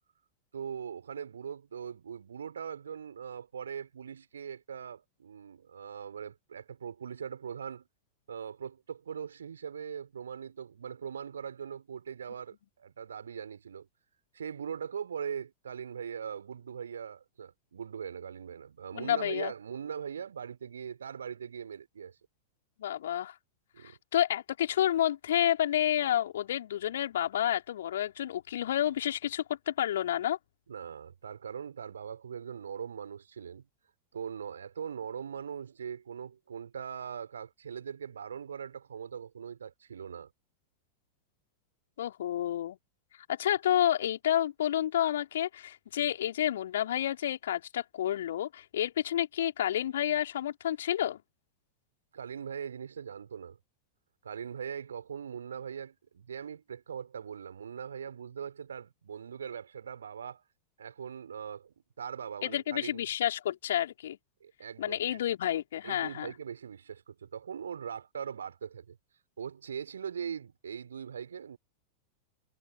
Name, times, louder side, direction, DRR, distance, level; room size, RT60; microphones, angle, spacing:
voice 1, 0.5-7.9 8.3-13.9 14.3-22.2 23.7-24.0 30.7-33.7 34.1-40.3 52.1-53.6 54.2-60.4 60.8-63.0 64.4-65.2 65.8-69.0 69.4-71.6, right 7 dB, 70° right, 4.9 m, -41 dB
voice 2, 18.9-19.5 22.8-23.3 24.1-30.4 42.0-42.8 43.3-51.2 62.4-64.2 64.8-66.3, left 11 dB, 60° left, 4.4 m, -30 dB
figure-of-eight pair, 90°, 0 cm